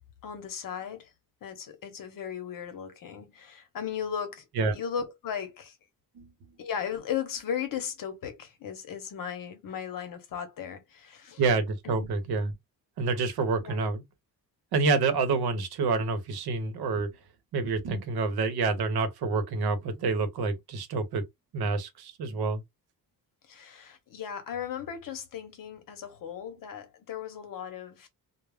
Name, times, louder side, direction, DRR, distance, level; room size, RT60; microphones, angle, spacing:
voice 1, 0.2-1.1 1.4-4.4 4.7-5.8 6.6-11.4 11.8-12.1 13.6-13.9 23.5-28.1, left 8 dB, 60° left, 0.8 m, -36 dB
voice 2, 11.4-12.5 13.0-14.0 14.7-17.1 17.5-21.2 21.5-22.6, right 4 dB, 85° right, 0.8 m, -28 dB
2.3 x 2.0 x 3.2 m
wide cardioid pair, 180°, 37 cm